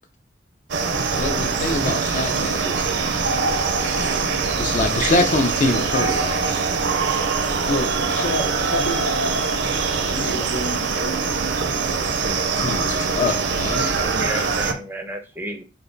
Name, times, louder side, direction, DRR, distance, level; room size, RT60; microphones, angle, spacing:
sound 1, 0.7-14.7, right 4 dB, 70° right, 0.5 m, -23 dB
voice 1, 1.2-2.8 4.5-6.4 12.4-13.9, left 2 dB, 45° left, 0.4 m, -24 dB
voice 2, 7.6-9.1 9.9-11.2 11.6-12.1 12.9-13.3, left 1 dB, 80° left, 0.8 m, -30 dB
voice 3, 13.8-15.6, right 1 dB, 10° right, 0.5 m, -32 dB
3.4 x 2.2 x 3.8 m
head